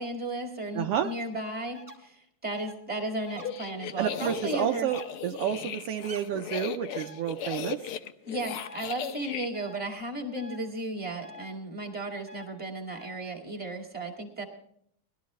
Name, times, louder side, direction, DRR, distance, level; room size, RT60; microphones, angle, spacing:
voice 1, 0.0-4.9 8.3-14.4, right 1 dB, 5° right, 0 dB, 1.4 m, -35 dB
voice 2, 0.7-1.1 4.0-7.8, right 10 dB, 85° right, 5 dB, 1.3 m, -30 dB
sound 1, 0.9-1.1 1.7-1.9 2.5-2.7 3.3-3.5 4.9-5.0 6.0-6.2 6.9-7.1 8.6-8.8 9.5-9.7 10.3-10.6 11.2-11.4 12.3-12.5 12.9-13.1, equal, 20° right, 1.5 m, -46 dB
sound 2, 3.3-9.5, left 9 dB, 85° left, 1.2 m, -37 dB
20.0 x 12.5 x 3.1 m, 0.67 s
omnidirectional pair, 3.4 m